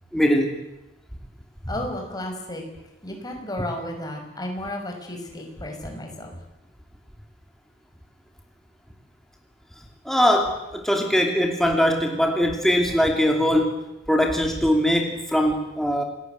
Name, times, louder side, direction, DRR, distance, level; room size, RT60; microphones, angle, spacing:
voice 1, 0.1-0.6 10.0-13.8 14.1-16.0, equal, ahead, 2 dB, 2.7 m, -21 dB
voice 2, 1.7-2.6 3.0-6.3, left 1 dB, 20° left, 2 dB, 5.9 m, -33 dB
28.5 x 19.5 x 9.4 m, 0.98 s
head